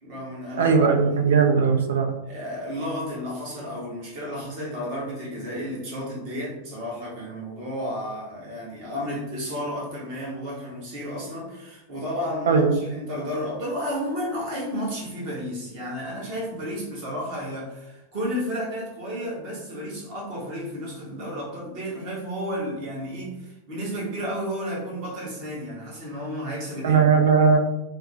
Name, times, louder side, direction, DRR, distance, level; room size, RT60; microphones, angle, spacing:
voice 1, 0.0-1.4 2.2-27.0, equal, 45° right, -5 dB, 1.2 m, -32 dB
voice 2, 0.6-2.1 12.5-12.7 26.8-27.6, right 5 dB, 60° right, 5 dB, 0.4 m, -18 dB
3.2 x 2.1 x 2.9 m, 0.95 s
figure-of-eight pair, 90°, 0 cm